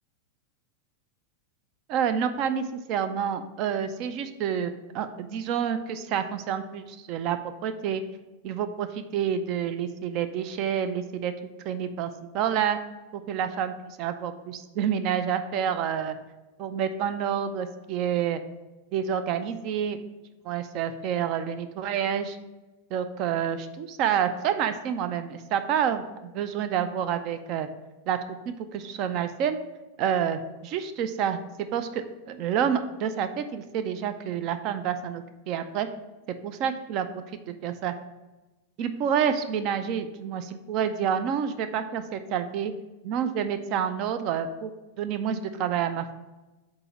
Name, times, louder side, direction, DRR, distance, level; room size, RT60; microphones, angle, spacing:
voice 1, 1.9-8.0 8.4-11.3 11.6-12.8 13.1-16.1 16.6-18.4 18.9-20.0 20.4-22.4 22.9-27.7 28.1-28.2 28.5-29.6 30.0-31.4 31.7-35.9 36.4-37.9 38.8-42.7 43.0-44.7 45.0-46.1, right 8 dB, 40° right, 10 dB, 0.5 m, -28 dB
7.6 x 2.8 x 6.0 m, 1.1 s
figure-of-eight pair, 90°, 0 cm